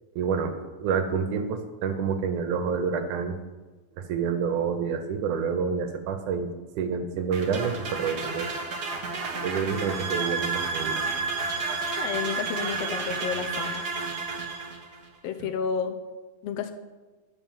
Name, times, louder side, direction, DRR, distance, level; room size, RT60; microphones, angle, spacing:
voice 1, 0.2-0.5 0.8-3.4 4.0-6.5 6.8-8.5 9.4-11.0 15.4-15.5, right 6 dB, 85° right, 6 dB, 2.3 m, -28 dB
sound 1, 7.3-15.1, right 3 dB, 50° right, 1.3 m, -33 dB
sound 2, 9.7-14.7, right 6 dB, 65° right, 2.5 m, -33 dB
voice 2, 12.0-13.8 15.2-16.0 16.4-16.7, left 7 dB, 75° left, 6 dB, 1.6 m, -31 dB
11.0 x 5.4 x 7.3 m, 1.2 s
omnidirectional pair, 3.5 m